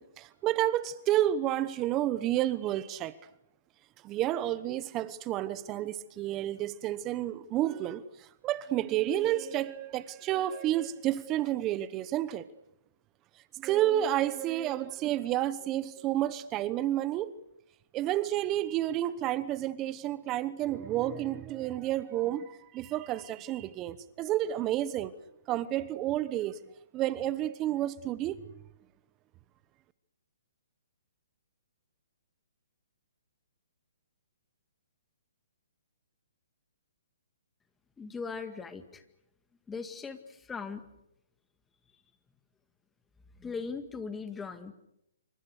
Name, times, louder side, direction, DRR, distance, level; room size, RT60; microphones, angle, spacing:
voice 1, 0.0-3.1 4.0-12.5 13.6-17.3 17.9-25.1 25.5-26.6 26.9-28.7, right 13 dB, 25° right, 1.1 m, -30 dB
voice 2, 38.0-39.0 39.7-40.8 43.4-44.7, left 5 dB, 10° left, 2.0 m, -39 dB
27.5 x 25.0 x 6.7 m
hypercardioid pair, 140°, 0 cm